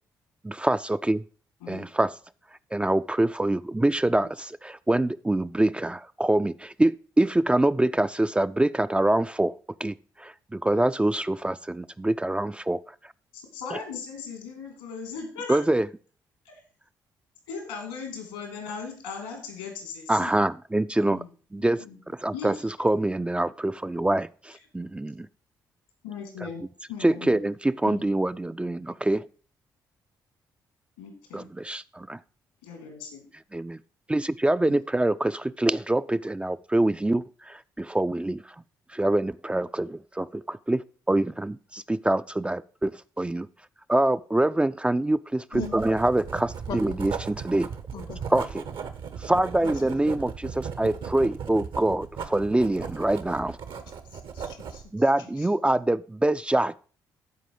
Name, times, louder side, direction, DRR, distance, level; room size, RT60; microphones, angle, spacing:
voice 1, 0.4-1.2 1.7-2.2 2.7-9.5 9.8-12.9 15.5-15.9 20.1-21.2 21.5-25.3 26.4-26.5 27.0-29.2 31.3-32.2 33.5-33.8 34.1-38.4 38.9-43.5 43.9-47.7 48.3-48.6 49.2-53.6 54.9-56.8, right 1 dB, 10° right, 12 dB, 0.4 m, -25 dB
voice 2, 13.3-15.6 16.4-16.6 17.5-20.3 21.0-21.3 21.8-22.0 22.3-22.5 26.0-27.4 27.9-28.0 31.0-31.5 32.6-33.3 34.7-34.8, left 5 dB, 85° left, 4 dB, 2.7 m, -38 dB
voice 3, 45.5-45.9 46.7-47.0 47.9-48.4 49.6-50.0 54.1-55.0 55.4-55.5, left 8 dB, 55° left, 11 dB, 0.8 m, -40 dB
Writing, 45.5-54.9, right 6 dB, 60° right, 1.0 m, -37 dB
13.5 x 4.9 x 4.9 m, 0.40 s
hypercardioid pair, 45°, 10 cm